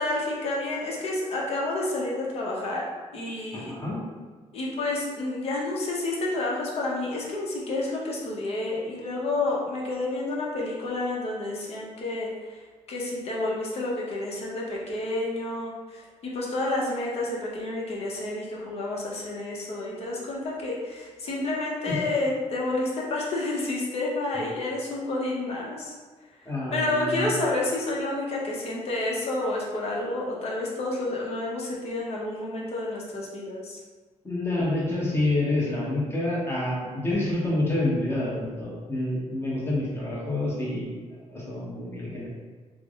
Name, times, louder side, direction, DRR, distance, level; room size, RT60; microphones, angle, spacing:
voice 1, 0.0-2.8 3.1-3.8 4.5-12.6 12.9-25.9 26.7-33.8, left 2 dB, 55° left, -3 dB, 0.8 m, -29 dB
voice 2, 3.5-4.0 21.9-22.0 26.4-27.3 34.2-42.3, left 1 dB, 20° left, -6 dB, 0.9 m, -28 dB
3.3 x 2.0 x 3.5 m, 1.4 s
cardioid pair, 140°, 12 cm